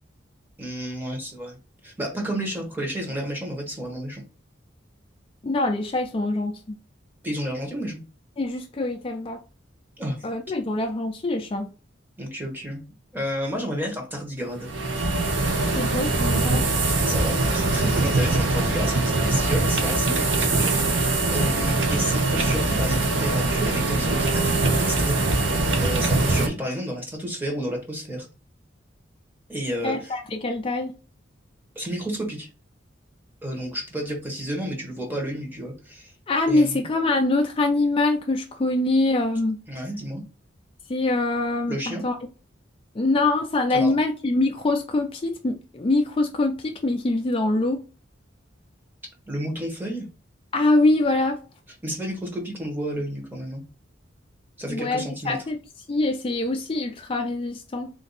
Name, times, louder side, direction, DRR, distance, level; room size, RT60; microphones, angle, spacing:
voice 1, 0.6-4.2 7.2-8.0 10.0-10.3 12.2-12.8 13.1-14.7 17.0-28.3 29.5-30.2 31.7-32.5 33.4-36.1 36.5-36.8 39.7-40.2 41.7-42.0 43.7-44.0 49.3-50.1 51.8-53.6 54.6-55.4, equal, 10° right, 1.0 m, -31 dB
voice 2, 5.4-6.8 8.4-9.4 10.2-11.7 15.8-16.7 29.8-30.9 36.3-39.6 40.9-42.2 42.9-47.8 50.5-51.4 54.7-55.6 55.9-57.9, left 2 dB, 30° left, 0.4 m, -24 dB
sound 1, 14.6-26.5, right 2 dB, 70° right, 0.7 m, -22 dB
3.7 x 2.6 x 4.0 m
head